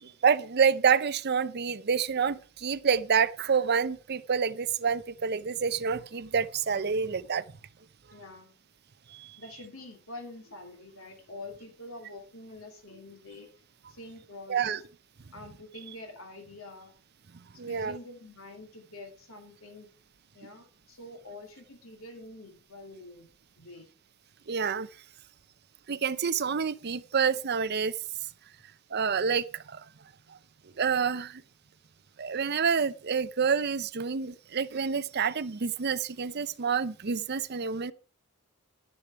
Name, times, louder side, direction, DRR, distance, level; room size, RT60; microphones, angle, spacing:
voice 1, 0.0-7.5 9.1-9.4 14.5-14.8 17.6-18.0 24.5-24.9 25.9-27.9 28.9-29.8 30.8-31.4 32.2-37.9, right 6 dB, 50° right, 0.6 m, -28 dB
voice 2, 8.1-8.5 9.4-13.5 13.9-14.8 15.3-16.9 17.5-19.9 20.3-23.3 23.6-23.9, left 2 dB, 80° left, 2.7 m, -46 dB
11.5 x 9.9 x 4.7 m
head